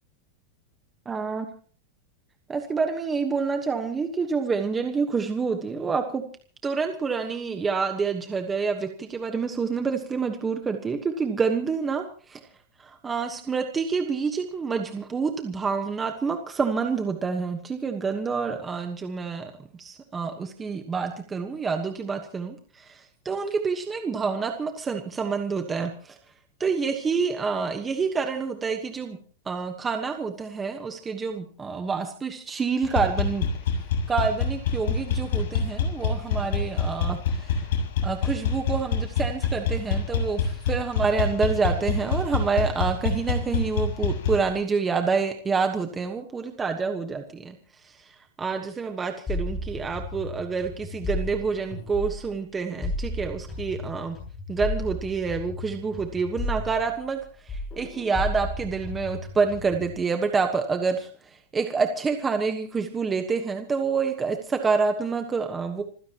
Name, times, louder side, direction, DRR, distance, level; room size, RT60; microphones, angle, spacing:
voice 1, 1.0-1.5 2.5-6.2 6.6-12.4 12.8-19.5 19.8-26.2 26.6-29.2 29.4-33.5 34.1-37.7 38.0-47.6 47.8-48.1 48.4-54.2 54.5-57.2 57.4-65.8, right 5 dB, 10° right, 5 dB, 1.3 m, -27 dB
sound 1, 32.8-44.5, left 5 dB, 65° left, 7.4 m, -26 dB
sound 2, 49.3-52.4 52.8-57.2 57.5-59.9, left 1 dB, 15° left, 7.8 m, -34 dB
27.0 x 16.0 x 3.0 m, 0.42 s
supercardioid pair, 170°, 0 cm